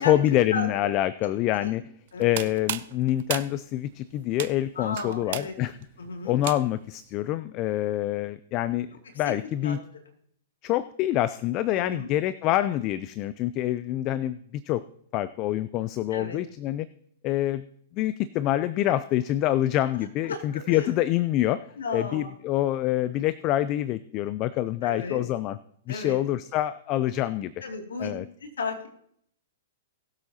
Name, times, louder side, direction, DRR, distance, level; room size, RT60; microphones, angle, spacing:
voice 1, 0.0-1.8 2.2-5.7 6.2-8.9 9.2-9.8 10.6-14.8 15.1-16.9 17.2-17.6 17.9-21.6 21.9-25.6 25.9-27.5 28.0-28.3, left 13 dB, 35° left, 16 dB, 0.4 m, -26 dB
voice 2, 0.5-0.9 1.5-1.7 2.1-2.4 4.8-5.5 6.0-6.4 9.6-9.8 11.7-12.1 16.1-16.4 20.2-20.9 21.8-22.3 24.8-25.2 25.9-26.2 27.6-28.1 28.6-28.9, left 4 dB, 80° left, 3 dB, 2.4 m, -34 dB
sound 1, 2.1-6.9, right 13 dB, 55° right, 0.6 m, -36 dB
20.0 x 7.8 x 2.9 m, 0.68 s
hypercardioid pair, 120°, 0 cm